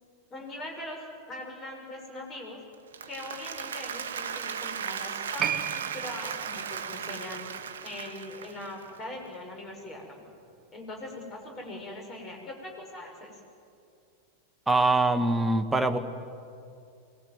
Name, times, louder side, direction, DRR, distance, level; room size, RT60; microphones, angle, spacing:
voice 1, 0.3-1.0 1.3-2.6 3.1-7.4 7.8-10.2 10.7-13.4, left 1 dB, 25° left, 1 dB, 6.5 m, -41 dB
Applause, 2.7-9.0, right 7 dB, 65° right, 1.2 m, -36 dB
Piano, 5.4-12.4 12.6-12.7, right 10 dB, 30° right, 1.1 m, -39 dB
voice 2, 14.7-16.0, right 2 dB, 10° right, 7 dB, 1.6 m, -23 dB
24.5 x 20.5 x 9.5 m, 2.5 s
figure-of-eight pair, 90°, 0 cm